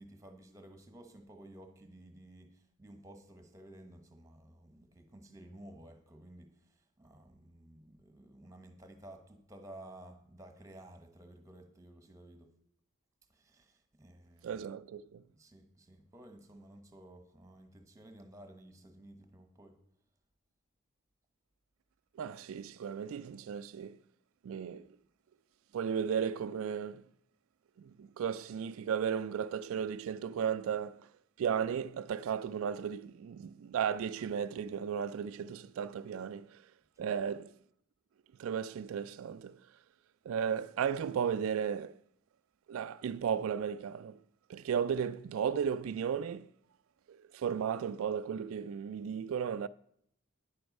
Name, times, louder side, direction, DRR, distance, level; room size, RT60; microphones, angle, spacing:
voice 1, 0.0-12.5 13.3-14.6 15.3-19.8, right 1 dB, 15° right, 1.2 m, -54 dB
voice 2, 14.4-15.2 22.2-24.0 24.4-24.9 25.7-27.0 27.8-31.0 31.4-36.6 37.0-37.5 38.4-39.6 40.3-41.9 42.7-44.2 44.5-46.5 47.1-49.7, right 7 dB, 75° right, 0.3 m, -35 dB
10.0 x 7.8 x 5.3 m
head